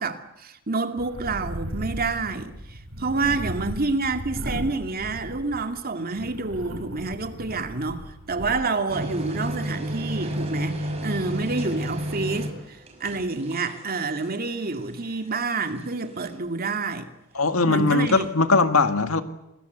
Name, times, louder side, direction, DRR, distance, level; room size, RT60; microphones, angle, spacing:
voice 1, 0.0-8.0 8.3-17.1 17.7-18.3, right 3 dB, 45° right, 2.4 m, -28 dB
sound 1, 1.0-5.8 6.1-8.5, equal, 75° right, 8.0 m, -36 dB
sound 2, 8.9-16.6 17.9-18.3, equal, 30° right, 5.9 m, -33 dB
voice 2, 17.4-19.2, left 3 dB, 80° left, 1.9 m, -20 dB
27.5 x 20.5 x 8.1 m
head